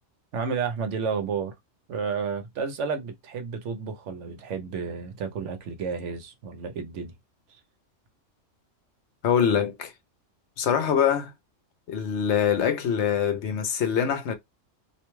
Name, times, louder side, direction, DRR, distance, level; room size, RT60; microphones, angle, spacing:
voice 1, 0.3-1.5 1.9-7.1, right 5 dB, 75° right, 1.0 m, -31 dB
voice 2, 9.2-9.9 10.6-11.3 11.9-14.3, left 8 dB, 70° left, 0.9 m, -24 dB
2.6 x 2.2 x 3.0 m
omnidirectional pair, 1.3 m